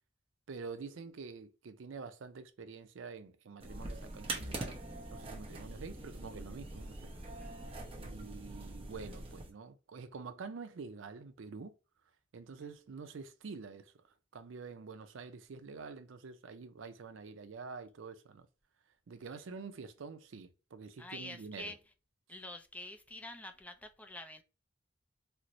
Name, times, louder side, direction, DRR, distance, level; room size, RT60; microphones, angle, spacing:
voice 1, 0.5-4.8 5.1-7.1 8.0-11.7 12.3-13.9 14.3-18.5 19.1-21.8, right 4 dB, 80° right, 0.5 m, -47 dB
sound 1, 3.6-9.5, right 2 dB, 30° right, 0.7 m, -43 dB
voice 2, 7.4-8.2 12.6-12.7 21.0-21.8 22.3-24.4, left 1 dB, 10° left, 0.3 m, -47 dB
4.4 x 2.0 x 2.5 m
head